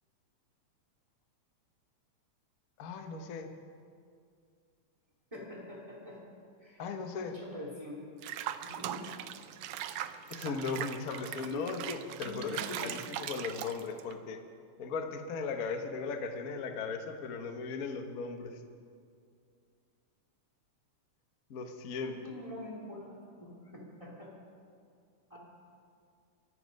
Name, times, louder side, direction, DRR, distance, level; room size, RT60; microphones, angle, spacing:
voice 1, 2.8-3.5 6.8-7.3 10.3-14.4 14.8-18.6 21.5-22.1, left 4 dB, 80° left, 6 dB, 0.7 m, -37 dB
voice 2, 5.3-6.2 6.6-6.8 7.1-8.0 8.6-9.0 11.5-11.6 12.2-12.9 22.0-24.3 25.3-25.4, left 1 dB, 10° right, -2 dB, 2.7 m, -45 dB
Water / Bathtub (filling or washing), 8.2-14.1, right 11 dB, 90° right, 1.3 m, -40 dB
24.0 x 9.9 x 5.3 m, 2.3 s
omnidirectional pair, 3.3 m